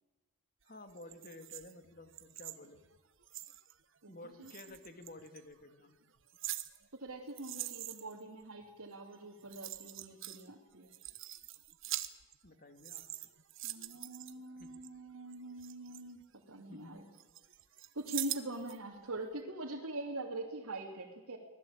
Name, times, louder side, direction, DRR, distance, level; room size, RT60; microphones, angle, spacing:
voice 1, 0.6-2.8 4.1-6.0 12.4-13.0 14.6-14.7 16.7-17.1, left 2 dB, 40° left, 8 dB, 2.5 m, -52 dB
sound 1, 0.9-3.7 4.4-5.4 6.0-8.2 9.1-9.2 9.4-10.5 10.8-12.5 12.8-14.9 15.3-16.8 17.1-18.8 19.2-19.3, right 14 dB, 60° right, 1.3 m, -44 dB
voice 2, 6.9-10.9 13.6-17.0 17.9-21.4, right 2 dB, 90° right, -2 dB, 3.1 m, -43 dB
25.0 x 19.0 x 8.9 m, 1.2 s
head